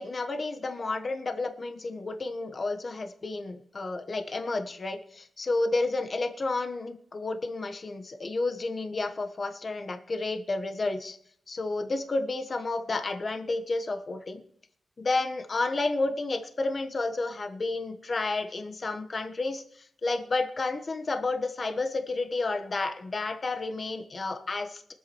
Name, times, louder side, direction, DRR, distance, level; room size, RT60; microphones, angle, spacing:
voice 1, 0.0-11.2 11.5-14.4 15.0-19.6 20.0-24.9, left 3 dB, 40° left, 6 dB, 1.2 m, -31 dB
23.0 x 8.2 x 3.1 m, 0.64 s
wide cardioid pair, 120°, 0 cm